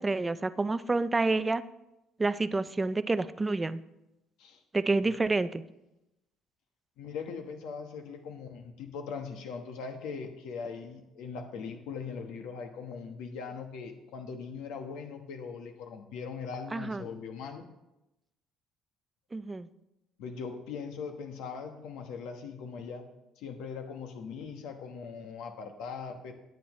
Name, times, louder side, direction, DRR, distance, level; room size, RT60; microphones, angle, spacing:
voice 1, 0.0-1.6 2.2-3.8 4.7-5.6 16.7-17.1 19.3-19.7, right 3 dB, 15° right, 13 dB, 0.4 m, -28 dB
voice 2, 7.0-17.6 20.2-23.0 23.4-26.3, left 5 dB, 80° left, 5 dB, 1.3 m, -40 dB
17.0 x 9.5 x 3.2 m, 0.92 s
cardioid pair, 160°, 0 cm